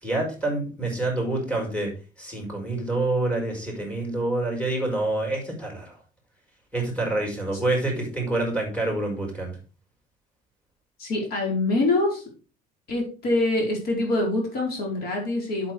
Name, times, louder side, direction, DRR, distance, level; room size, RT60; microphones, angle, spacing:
voice 1, 0.0-1.9 2.2-5.9 6.7-9.5, right 2 dB, 10° left, -1 dB, 5.2 m, -27 dB
voice 2, 11.0-12.2 12.9-15.7, left 2 dB, 65° left, 0 dB, 4.8 m, -25 dB
8.2 x 7.6 x 4.7 m, 0.35 s
cardioid pair, 110°, 17 cm